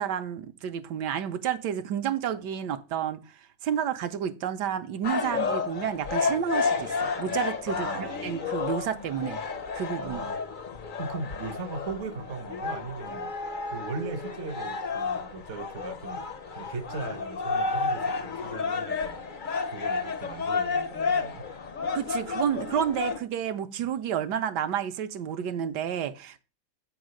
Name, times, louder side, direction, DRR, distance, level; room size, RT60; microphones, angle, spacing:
voice 1, 0.0-3.2 3.6-9.4 9.7-10.2 21.9-26.4, right 9 dB, 75° right, 1.2 m, -30 dB
sound 1, 5.0-23.2, left 4 dB, 65° left, 0.4 m, -31 dB
voice 2, 7.7-8.3 10.0-10.4 11.0-13.3 13.7-16.2 16.5-19.2 19.7-21.5 23.8-23.9, right 4 dB, 60° right, 0.8 m, -38 dB
8.0 x 3.7 x 6.3 m
omnidirectional pair, 1.9 m